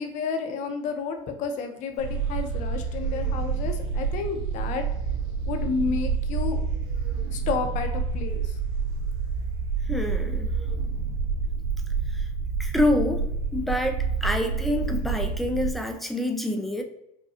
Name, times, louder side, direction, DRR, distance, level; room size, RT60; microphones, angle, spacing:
voice 1, 0.0-4.8 5.4-6.6 7.3-8.6, left 5 dB, 45° left, 5 dB, 0.7 m, -31 dB
sound 1, 2.0-15.7, right 5 dB, 65° right, 1.3 m, -28 dB
voice 2, 9.9-10.5 12.1-12.3 12.6-13.3 13.5-16.8, left 1 dB, ahead, 4 dB, 0.4 m, -27 dB
5.6 x 2.2 x 2.7 m, 0.85 s
supercardioid pair, 130°, 17 cm